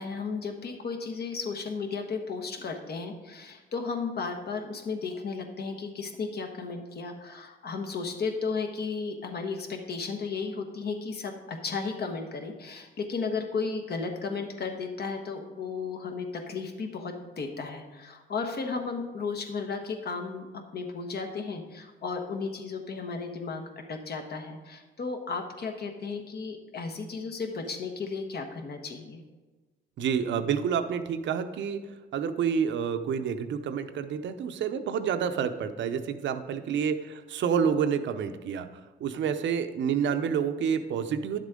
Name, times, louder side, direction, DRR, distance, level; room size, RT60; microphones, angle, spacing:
voice 1, 0.0-29.2, left 4 dB, 55° left, 5 dB, 1.3 m, -34 dB
voice 2, 30.0-31.8 32.1-38.7 39.0-41.4, right 7 dB, 70° right, 9 dB, 0.7 m, -28 dB
10.5 x 7.4 x 3.7 m, 1.2 s
cardioid pair, 90°, 20 cm